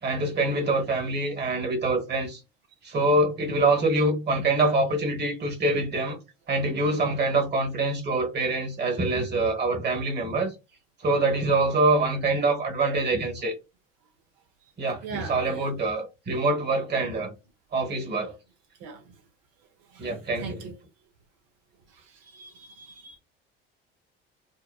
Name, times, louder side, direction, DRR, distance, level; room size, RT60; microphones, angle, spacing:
voice 1, 0.0-2.4 2.8-6.2 6.5-10.5 11.0-13.5 14.8-17.3 17.7-18.3 20.0-20.7, right 2 dB, 35° right, 1.2 m, -25 dB
voice 2, 15.0-15.7 18.8-19.0 19.9-20.1 20.4-20.7 22.3-23.1, right 5 dB, 70° right, 0.7 m, -40 dB
2.8 x 2.1 x 2.2 m
hypercardioid pair, 65°, 30 cm